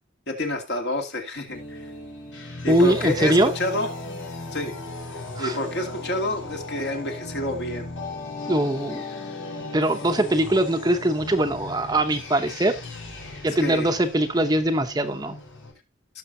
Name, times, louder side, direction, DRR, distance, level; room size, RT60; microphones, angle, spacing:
voice 1, 0.3-1.8 2.6-3.9 4.5-4.7 5.4-7.9 13.6-13.9, left 1 dB, 55° left, 2.4 m, -28 dB
sound 1, 1.5-15.7, left 3 dB, 85° left, 6.5 m, -37 dB
voice 2, 2.7-3.5 5.4-5.6 8.5-9.0 9.7-12.8 13.4-15.4, right 1 dB, 20° right, 0.8 m, -22 dB
17.0 x 6.5 x 2.7 m
head